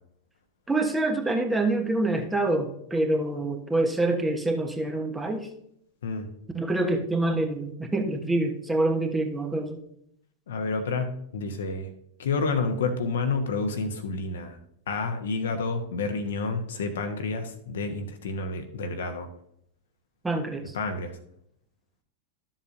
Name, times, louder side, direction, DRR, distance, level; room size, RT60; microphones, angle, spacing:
voice 1, 0.7-5.5 6.5-9.8 20.2-20.7, right 2 dB, 10° right, 4 dB, 1.2 m, -26 dB
voice 2, 10.5-11.9 12.2-14.6 14.9-19.3 20.7-21.2, left 4 dB, 60° left, 7 dB, 1.1 m, -29 dB
12.5 x 7.3 x 2.7 m, 0.71 s
figure-of-eight pair, 90°, 0 cm